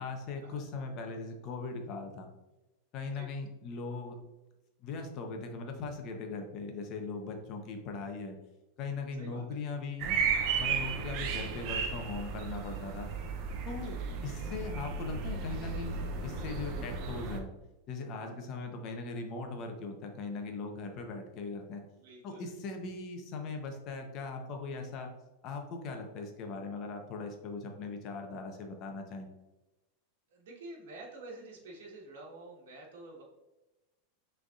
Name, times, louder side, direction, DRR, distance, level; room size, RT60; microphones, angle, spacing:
voice 1, 0.0-2.3 2.9-4.2 4.8-8.4 8.8-10.2 10.5-13.1 13.7-14.0 14.2-17.5 17.9-21.8 22.2-25.1 25.4-29.3, left 4 dB, 35° left, 4 dB, 0.7 m, -39 dB
sound 1, 10.0-17.4, right 6 dB, 40° right, 0.6 m, -34 dB
voice 2, 22.0-22.5 30.3-33.2, right 2 dB, 80° right, -3 dB, 1.2 m, -48 dB
6.3 x 3.4 x 2.4 m, 1.0 s
supercardioid pair, 160°, 0 cm